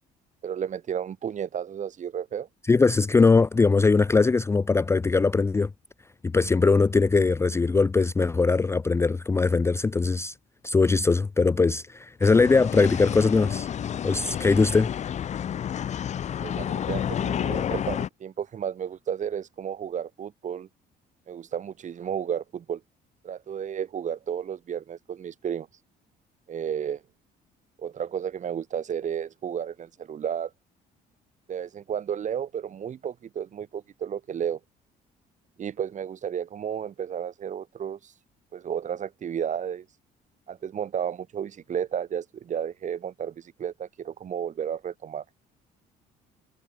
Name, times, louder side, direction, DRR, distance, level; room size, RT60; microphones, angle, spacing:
voice 1, 0.4-2.5 16.4-20.7 21.3-22.8 23.2-25.7 26.5-27.0 27.8-30.5 31.5-34.6 35.6-38.1 38.5-39.9 40.5-45.2, right 8 dB, 45° right, 4.2 m, -32 dB
voice 2, 2.7-5.7 6.2-10.3 10.6-13.7 14.0-14.9, left 4 dB, 15° left, 0.4 m, -21 dB
sound 1, 12.2-18.1, left 9 dB, 45° left, 0.8 m, -30 dB
cardioid pair, 110°, 17 cm